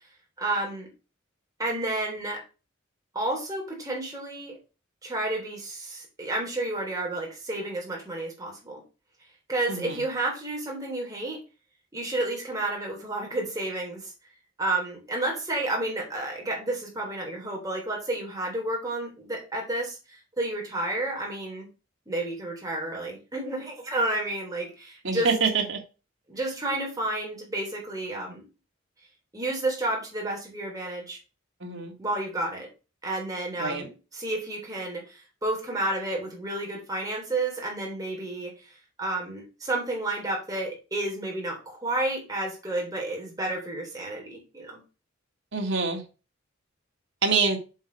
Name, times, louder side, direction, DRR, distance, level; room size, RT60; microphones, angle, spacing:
voice 1, 0.4-0.9 1.6-2.4 3.1-4.6 5.0-8.8 9.5-11.4 11.9-14.1 14.6-21.7 22.1-25.3 26.3-28.4 29.3-31.2 32.0-32.7 33.0-38.7 39.0-44.8, right 2 dB, 20° right, -1 dB, 3.7 m, -31 dB
voice 2, 9.7-10.0 25.0-25.8 31.6-31.9 33.6-33.9 45.5-46.0 47.2-47.6, right 4 dB, 65° right, 1 dB, 1.9 m, -26 dB
7.7 x 4.9 x 5.3 m, 0.32 s
head